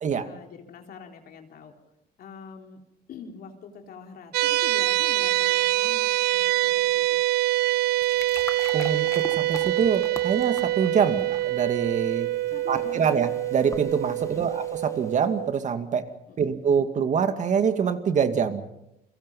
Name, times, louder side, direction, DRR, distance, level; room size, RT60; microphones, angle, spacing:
voice 1, 0.3-1.7 2.2-2.8 3.1-7.2 12.5-13.2 14.2-14.5 16.3-16.6, left 6 dB, 60° left, 3 dB, 3.7 m, -44 dB
sound 1, 4.3-15.5, right 16 dB, 75° right, 0.8 m, -25 dB
sound 2, 7.8-15.3, left 3 dB, 20° left, 1.7 m, -43 dB
voice 2, 8.7-12.3 12.7-16.1 16.4-18.7, right 6 dB, 45° right, 8 dB, 2.3 m, -25 dB
29.5 x 23.5 x 5.6 m, 0.85 s
cardioid pair, 110°, 17 cm